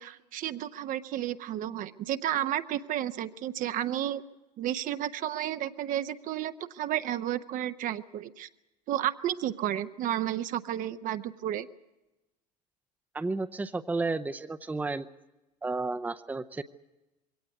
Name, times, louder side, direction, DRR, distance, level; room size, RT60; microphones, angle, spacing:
voice 1, 0.0-4.2 4.6-8.5 8.9-11.7, right 12 dB, 40° right, 11 dB, 0.9 m, -32 dB
voice 2, 13.1-15.1 15.6-16.6, right 3 dB, 10° right, 11 dB, 0.7 m, -32 dB
23.0 x 17.5 x 8.2 m, 1.0 s
figure-of-eight pair, 70°, 21 cm